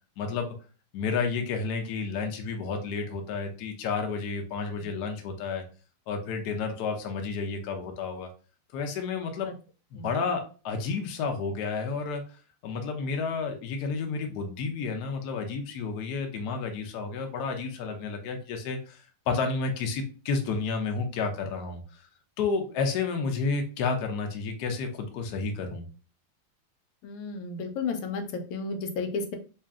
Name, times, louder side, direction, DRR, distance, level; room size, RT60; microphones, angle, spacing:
voice 1, 0.2-0.5 0.9-5.6 6.1-8.3 8.7-9.5 9.9-12.2 12.6-22.1 22.4-25.8, left 4 dB, 65° left, 4 dB, 1.0 m, -31 dB
voice 2, 27.0-29.4, left 4 dB, 90° left, 7 dB, 1.6 m, -32 dB
3.2 x 2.8 x 3.5 m, 0.36 s
omnidirectional pair, 2.4 m